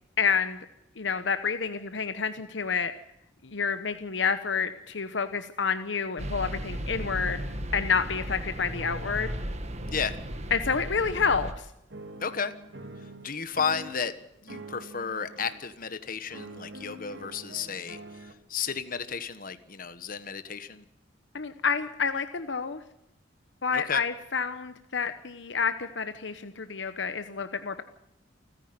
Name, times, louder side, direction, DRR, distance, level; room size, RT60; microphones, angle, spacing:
voice 1, 0.2-0.6 1.0-2.9 3.4-7.4 7.7-9.3 10.5-11.7 21.3-22.8 23.6-27.8, left 5 dB, 70° left, 10 dB, 1.0 m, -29 dB
sound 1, 6.2-11.5, equal, 35° right, 1.7 m, -35 dB
sound 2, 9.8-11.6 11.9-14.1 14.5-15.7 16.3-18.3, right 1 dB, 70° right, 2.2 m, -46 dB
voice 2, 12.2-12.5 13.2-14.2 14.4-20.8 23.7-24.0, left 6 dB, 50° left, 12 dB, 1.4 m, -33 dB
29.0 x 10.5 x 9.5 m, 0.85 s
head